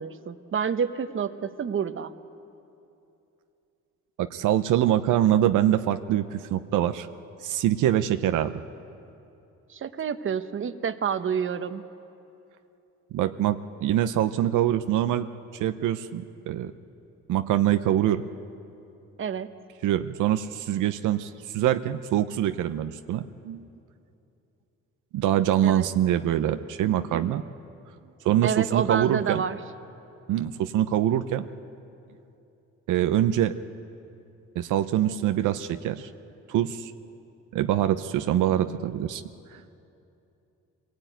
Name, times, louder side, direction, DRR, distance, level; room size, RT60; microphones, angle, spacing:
voice 1, 0.0-2.1 9.7-11.8 19.2-19.5 25.6-25.9 28.4-29.6, right 7 dB, 40° right, 11 dB, 1.1 m, -28 dB
voice 2, 4.2-7.1 7.4-8.6 13.1-15.3 15.6-16.7 17.3-18.2 19.8-23.6 25.1-27.4 28.2-29.4 30.3-31.4 32.9-33.5 34.6-36.1 36.5-36.9 37.5-39.2 39.5-39.6, right 11 dB, 85° right, 9 dB, 0.8 m, -24 dB
24.5 x 18.0 x 9.2 m, 2.8 s
cardioid pair, 90°, 30 cm